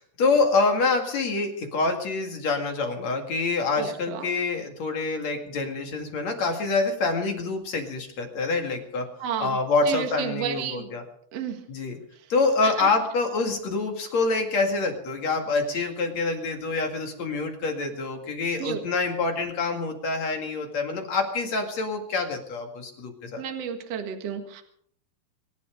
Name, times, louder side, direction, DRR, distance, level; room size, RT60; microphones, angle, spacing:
voice 1, 0.0-9.1 9.4-11.0 11.7-12.0 12.3-23.4, left 3 dB, 50° left, 4 dB, 3.0 m, -26 dB
voice 2, 3.8-4.3 9.2-9.6 9.9-10.9 11.3-11.7 12.2-12.3 12.6-12.9 18.6-18.8 23.4-24.6, right 8 dB, 50° right, 5 dB, 2.2 m, -32 dB
24.5 x 11.5 x 5.1 m, 0.64 s
omnidirectional pair, 4.6 m